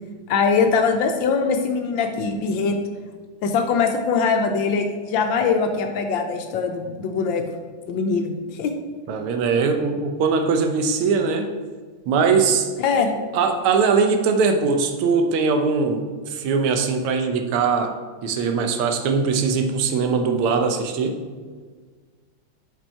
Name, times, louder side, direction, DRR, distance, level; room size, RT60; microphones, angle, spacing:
voice 1, 0.3-2.8 3.4-7.4 7.9-8.7 12.8-13.1, left 5 dB, 75° left, 5 dB, 1.2 m, -22 dB
voice 2, 9.1-11.5 12.1-12.7 13.3-16.0 16.3-17.9 18.2-21.2, right 5 dB, 80° right, 6 dB, 1.6 m, -21 dB
5.2 x 5.2 x 4.3 m, 1.5 s
omnidirectional pair, 2.4 m